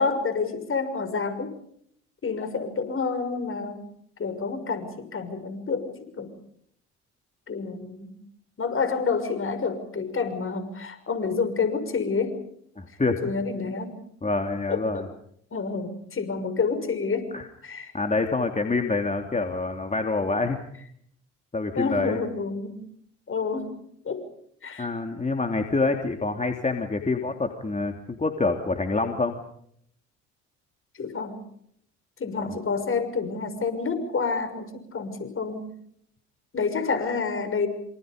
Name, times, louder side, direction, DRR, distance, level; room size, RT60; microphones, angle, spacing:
voice 1, 0.0-1.5 2.2-3.8 4.2-6.3 7.5-8.1 8.6-12.4 13.2-14.0 14.7-15.0 15.5-17.3 17.6-17.9 21.7-22.8 23.3-23.8 24.0-24.2 24.6-24.9 31.0-31.4 32.2-35.7 36.5-37.7, left 4 dB, 40° left, 9 dB, 6.4 m, -28 dB
voice 2, 12.8-13.2 14.2-15.1 17.3-17.4 17.9-20.6 21.5-22.2 24.8-29.4, left 3 dB, 20° left, 4 dB, 3.1 m, -26 dB
27.5 x 26.5 x 5.3 m, 0.69 s
hypercardioid pair, 60°, 32 cm